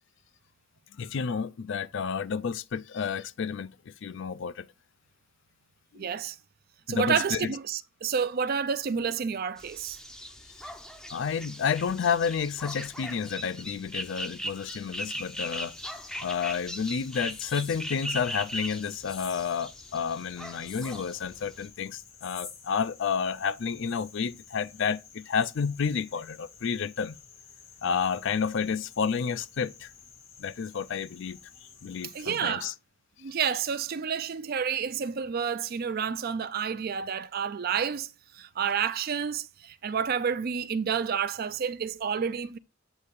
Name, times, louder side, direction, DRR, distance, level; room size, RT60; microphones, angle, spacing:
voice 1, 0.9-4.7 5.9-6.1 6.9-7.5 11.1-15.7 16.2-27.2 27.8-29.9 30.4-31.4 31.8-32.7, left 6 dB, 60° left, 0.4 m, -30 dB
voice 2, 5.9-6.4 6.9-10.0 32.1-32.7 33.2-42.6, right 7 dB, 45° right, 0.4 m, -30 dB
dog frog, 9.6-21.7, equal, 5° left, 0.5 m, -39 dB
sound 1, 15.0-32.4, left 6 dB, 85° left, 1.9 m, -51 dB
8.1 x 2.8 x 5.2 m
head